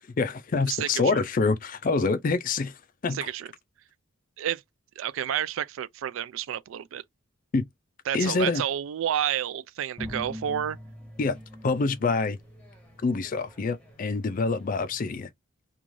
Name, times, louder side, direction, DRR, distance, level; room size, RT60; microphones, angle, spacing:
voice 1, 0.2-3.3 7.5-7.7 8.1-8.6 11.2-11.4 11.6-12.4 13.0-15.3, left 4 dB, 40° left, 0.3 m, -26 dB
voice 2, 0.7-1.2 3.1-3.5 4.4-4.6 5.0-7.0 8.1-10.8, right 10 dB, 70° right, 0.3 m, -30 dB
sound 1, 10.0-15.2, equal, 5° left, 0.8 m, -44 dB
3.0 x 2.3 x 2.5 m
head